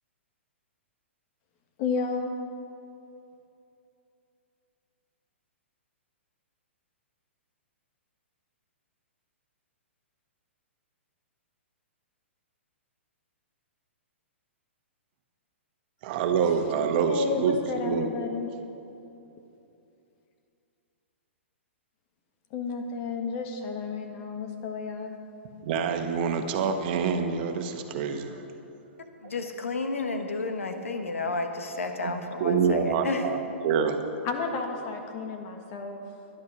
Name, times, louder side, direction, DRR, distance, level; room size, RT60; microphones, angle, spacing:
voice 1, 1.8-2.3 16.4-16.5 17.0-18.5 22.5-25.1 28.3-28.5 34.2-36.0, left 4 dB, 40° left, 5 dB, 1.5 m, -32 dB
voice 2, 16.0-17.6 17.8-18.1 25.6-28.3 32.0-33.4 33.6-34.0, right 6 dB, 45° right, 6 dB, 1.2 m, -26 dB
voice 3, 29.2-33.3, left 3 dB, 85° left, 6 dB, 1.3 m, -31 dB
11.0 x 11.0 x 6.1 m, 2.8 s
hypercardioid pair, 125°, 7 cm